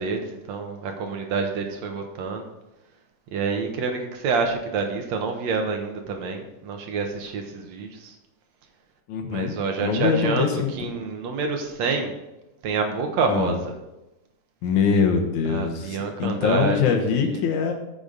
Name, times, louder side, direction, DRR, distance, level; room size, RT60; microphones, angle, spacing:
voice 1, 0.0-2.4 3.3-8.2 9.3-12.1 12.6-13.8 15.4-17.4, right 4 dB, 70° right, 4 dB, 2.4 m, -27 dB
voice 2, 9.1-9.5 9.8-10.9 13.3-13.5 14.6-17.7, left 6 dB, 90° left, 4 dB, 2.6 m, -23 dB
14.0 x 7.0 x 4.0 m, 0.96 s
omnidirectional pair, 3.3 m